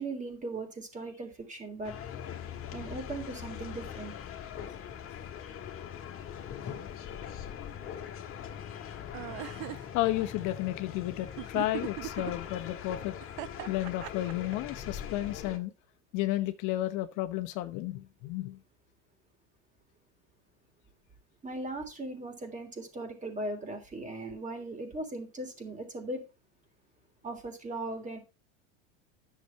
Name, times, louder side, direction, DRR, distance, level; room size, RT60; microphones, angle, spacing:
voice 1, 0.0-1.9 2.7-4.1 21.4-26.2 27.2-28.2, right 2 dB, 20° right, 3.2 m, -38 dB
sound 1, 1.8-15.6, left 9 dB, 40° left, 1.8 m, -41 dB
sound 2, 9.1-9.8 11.4-12.3 13.2-14.5, right 20 dB, 60° right, 0.5 m, -38 dB
voice 2, 9.9-13.1 13.7-15.7 16.1-18.6, left 15 dB, 60° left, 0.9 m, -32 dB
9.9 x 6.9 x 4.5 m
supercardioid pair, 100°, 35 cm